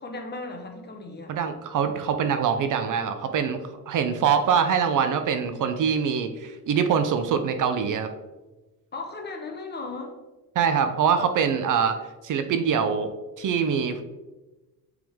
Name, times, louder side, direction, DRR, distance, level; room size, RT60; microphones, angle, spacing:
voice 1, 0.0-1.3 8.9-10.1, left 3 dB, 25° left, 3 dB, 0.8 m, -36 dB
voice 2, 1.3-3.6 3.9-8.1 10.6-12.0 12.2-13.1 13.4-14.0, right 7 dB, 50° right, 8 dB, 0.5 m, -24 dB
7.7 x 3.6 x 3.5 m, 1.1 s
cardioid pair, 160°, 39 cm